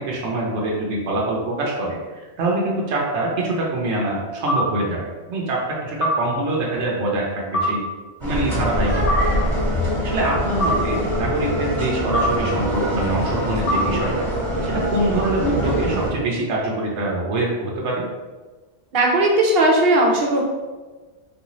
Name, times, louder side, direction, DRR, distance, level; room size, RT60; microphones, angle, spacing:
voice 1, 0.0-7.9 8.2-9.2 10.0-14.3 14.7-18.0, right 2 dB, 90° right, -3 dB, 1.0 m, -24 dB
sound 1, 4.5-4.7 6.0-6.2 7.5-7.7 9.1-9.3 10.6-10.8 12.1-12.3 13.7-13.9, equal, 85° left, 1.0 m, -21 dB
sound 2, 8.2-16.1, equal, 25° right, 1.1 m, -23 dB
voice 2, 18.9-20.4, right 1 dB, 65° right, 0 dB, 0.9 m, -17 dB
3.4 x 2.6 x 2.9 m, 1.3 s
omnidirectional pair, 1.1 m